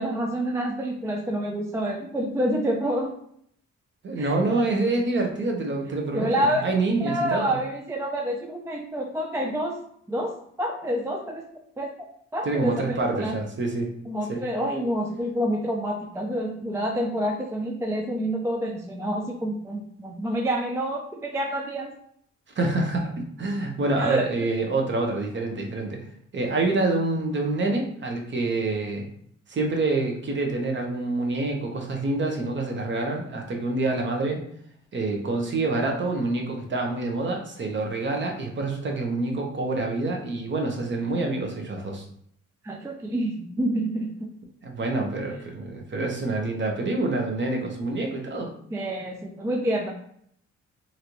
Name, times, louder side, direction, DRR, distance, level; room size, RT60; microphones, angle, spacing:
voice 1, 0.0-3.1 4.2-4.4 6.1-6.6 7.0-9.8 10.1-11.5 11.8-11.9 12.3-13.4 14.1-21.9 24.0-24.2 42.6-44.3 48.7-49.9, right 1 dB, 10° right, 2 dB, 0.3 m, -28 dB
voice 2, 4.0-7.6 12.4-13.9 14.3-14.4 22.6-26.0 26.3-29.1 29.5-34.4 34.9-42.1 44.6-48.5, right 2 dB, 40° right, 1 dB, 0.8 m, -27 dB
3.1 x 2.6 x 2.9 m, 0.68 s
cardioid pair, 90°, 30 cm